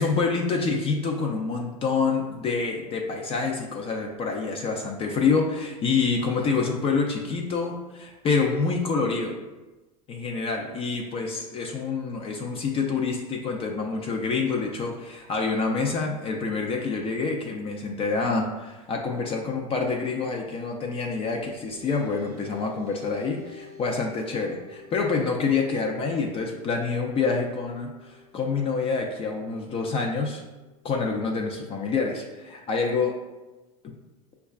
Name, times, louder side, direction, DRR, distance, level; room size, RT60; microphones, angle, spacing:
voice 1, 0.0-9.3 10.1-30.4 30.8-33.2 33.8-33.9, left 4 dB, 30° left, 1 dB, 0.4 m, -27 dB
sound 1, 21.2-32.0, left 5 dB, 85° right, 0.6 m, -51 dB
5.3 x 2.3 x 2.3 m, 1.1 s
supercardioid pair, 110°, 18 cm